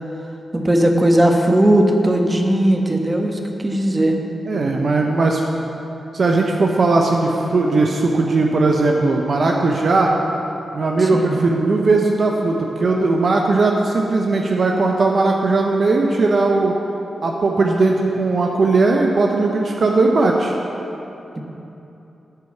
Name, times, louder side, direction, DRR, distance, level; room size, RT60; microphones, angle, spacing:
voice 1, 0.5-4.2 11.0-11.4, right 1 dB, 25° right, 2 dB, 1.4 m, -17 dB
voice 2, 4.5-5.4 6.1-10.1 10.7-16.7 17.2-20.5, right 3 dB, 60° right, 0 dB, 0.8 m, -18 dB
11.5 x 4.7 x 7.2 m, 2.9 s
supercardioid pair, 40°, 0 cm